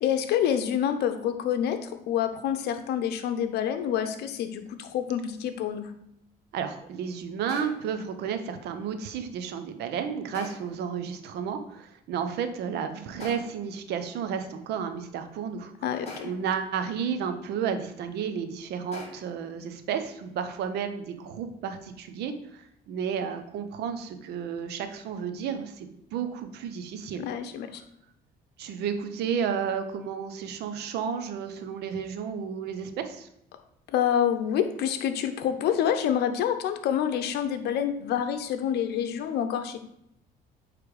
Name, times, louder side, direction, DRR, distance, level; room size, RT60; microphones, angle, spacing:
voice 1, 0.0-5.9 15.8-16.3 27.2-27.8 33.9-39.8, left 9 dB, 75° left, 8 dB, 0.8 m, -27 dB
voice 2, 6.5-15.7 16.2-27.3 28.6-33.3, right 7 dB, 75° right, 8 dB, 0.9 m, -32 dB
sound 1, 7.5-8.0 10.3-10.9 13.2-13.8 16.1-16.6 18.9-19.4, left 2 dB, 40° left, 2.6 m, -43 dB
8.5 x 3.4 x 4.8 m, 0.78 s
cardioid pair, 110°, 17 cm